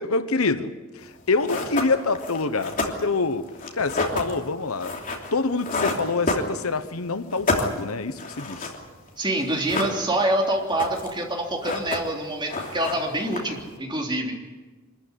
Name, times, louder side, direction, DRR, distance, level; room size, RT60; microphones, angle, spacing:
voice 1, 0.1-3.5 3.7-5.0 5.3-8.7, left 3 dB, 75° left, 1.1 m, -26 dB
sound 1, 1.1-1.2 1.5-6.9 7.2-9.1 9.4-10.3 10.6-11.2 11.5-12.2 12.5-13.7, left 2 dB, 40° left, 3.1 m, -29 dB
voice 2, 9.2-14.3, right 1 dB, 20° right, 3.4 m, -26 dB
24.5 x 14.0 x 10.0 m
head